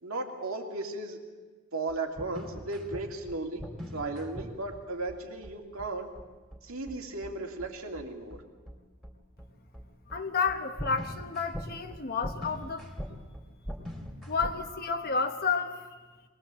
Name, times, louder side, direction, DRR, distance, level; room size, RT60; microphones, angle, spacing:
voice 1, 0.0-1.2 1.7-3.6 3.9-6.1 6.6-8.4, right 2 dB, 70° right, 3 dB, 2.4 m, -35 dB
sound 1, 1.9-14.6, equal, ahead, 2.7 m, -41 dB
voice 2, 10.1-12.9 14.3-15.8, left 5 dB, 45° left, 5 dB, 1.2 m, -31 dB
22.0 x 19.5 x 7.6 m, 1.4 s
head